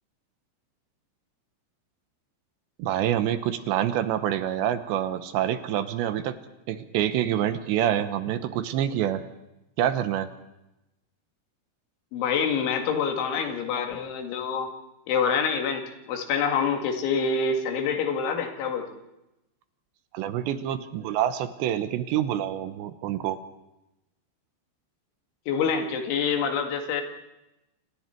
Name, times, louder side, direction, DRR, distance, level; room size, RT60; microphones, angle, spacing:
voice 1, 2.8-6.3 6.7-9.3 9.8-10.3 20.1-23.4, right 11 dB, 75° right, 10 dB, 3.0 m, -26 dB
voice 2, 12.1-14.7 15.1-19.0 25.5-27.0, left 6 dB, 80° left, 4 dB, 4.5 m, -26 dB
29.5 x 26.0 x 4.5 m, 0.94 s
omnidirectional pair, 5.5 m